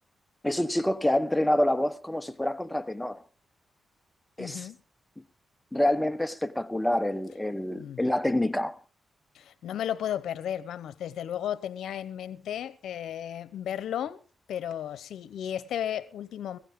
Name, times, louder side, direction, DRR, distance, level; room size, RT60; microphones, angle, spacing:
voice 1, 0.4-3.2 4.4-4.7 5.7-8.8, left 1 dB, 10° left, 1.0 m, -27 dB
voice 2, 4.4-4.8 7.8-8.0 9.3-14.2 14.5-16.6, left 10 dB, 90° left, 0.8 m, -34 dB
16.5 x 15.5 x 3.7 m
cardioid pair, 75°, 0 cm